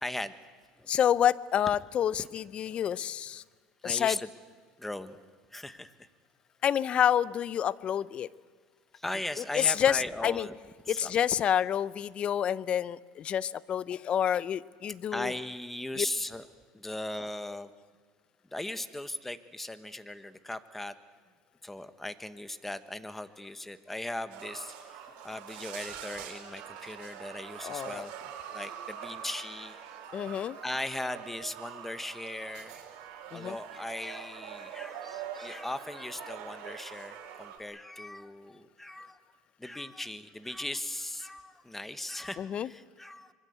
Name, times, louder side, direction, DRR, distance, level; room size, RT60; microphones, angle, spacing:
voice 1, 0.0-0.3 0.8-0.9 2.2-2.3 3.8-4.3 4.8-5.2 5.5-6.1 8.9-10.6 10.8-11.1 15.1-16.5 16.7-17.7 18.5-20.9 21.6-28.1 28.5-29.8 30.1-32.9 33.3-39.2 39.6-43.3, left 1 dB, 10° left, 11 dB, 1.4 m, -38 dB
voice 2, 0.9-3.4 3.8-4.2 6.6-8.3 9.5-10.5 10.9-15.3 16.0-16.1 27.6-28.0 30.1-30.6 33.3-33.6 42.4-42.7, left 9 dB, 45° left, 19 dB, 0.7 m, -28 dB
sound 1, 24.3-37.6, right 9 dB, 70° right, 4.5 m, -44 dB
25.5 x 22.5 x 8.2 m, 1.5 s
supercardioid pair, 95°, 3 cm